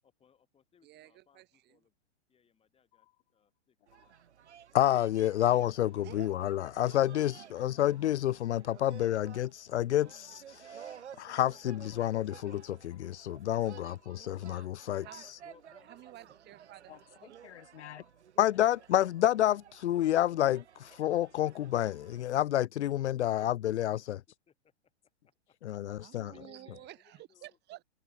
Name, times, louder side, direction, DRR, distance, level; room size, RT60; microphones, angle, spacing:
voice 1, 0.0-1.9 2.3-3.8 7.3-7.7 13.5-13.9 15.4-16.6 24.3-24.7 25.2-25.6 25.8-25.9 26.2-27.6, left 7 dB, 15° left, 7.7 m, -65 dB
voice 2, 0.8-1.8 6.0-6.3 6.8-7.0 9.3-9.4 15.0-15.3 15.9-17.4 25.8-27.8, right 16 dB, 30° right, 5.2 m, -52 dB
sound 1, 2.9-3.6 3.9-4.6 4.9-5.6 5.9-6.6 6.9-7.6 7.9-8.6 8.9-9.6 9.9-10.6 10.9-11.6 11.9-12.6 12.9-13.6 13.9-14.6 14.9-15.6 15.9-16.6 16.9-17.6 17.9-18.6 18.9-19.6 19.9-20.6 20.9-21.6 21.9-22.6, left 16 dB, 50° left, 7.0 m, -70 dB
sound 2, 3.9-22.3, right 9 dB, 75° right, 3.7 m, -54 dB
voice 3, 4.7-10.9 11.2-15.1 17.4-18.0 18.4-24.2 25.6-26.3, left 12 dB, 75° left, 0.5 m, -29 dB
hypercardioid pair, 125°, 35 cm